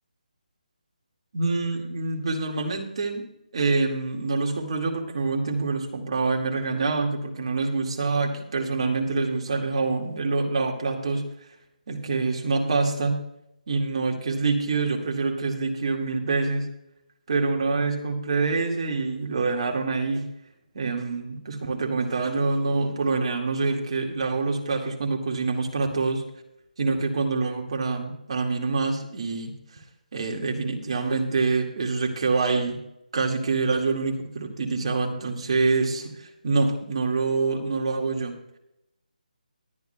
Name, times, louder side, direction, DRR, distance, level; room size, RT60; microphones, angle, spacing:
voice 1, 1.3-11.2 11.9-13.2 13.7-16.7 17.3-20.3 20.7-26.2 26.8-29.5 30.1-32.8 33.1-38.3, right 3 dB, 45° right, 1 dB, 2.1 m, -26 dB
21.5 x 9.6 x 2.3 m, 0.82 s
hypercardioid pair, 165°, 5 cm